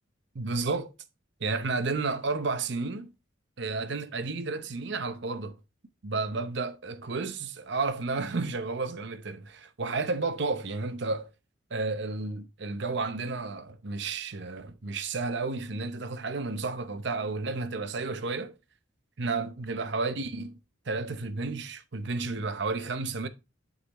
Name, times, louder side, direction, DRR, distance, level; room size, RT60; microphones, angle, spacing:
voice 1, 0.3-0.9 1.4-3.1 3.6-5.6 6.0-11.3 11.7-18.5 19.2-20.6 20.9-23.3, right 3 dB, 60° right, 0.7 m, -32 dB
11.0 x 4.0 x 2.9 m
head